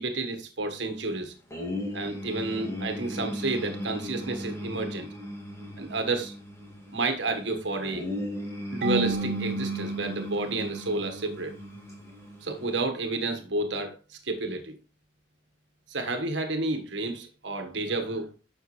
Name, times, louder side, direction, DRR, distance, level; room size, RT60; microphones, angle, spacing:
voice 1, 0.0-1.3 1.9-5.1 5.8-6.3 6.9-8.1 8.7-11.6 12.4-14.8 15.9-18.3, right 2 dB, 70° right, 1.4 m, -30 dB
sound 1, 1.5-12.7, left 1 dB, 15° left, 2.3 m, -37 dB
Marimba xylophone / Wood, 8.8-11.5, right 2 dB, 50° right, 1.0 m, -33 dB
10.0 x 6.5 x 3.2 m
head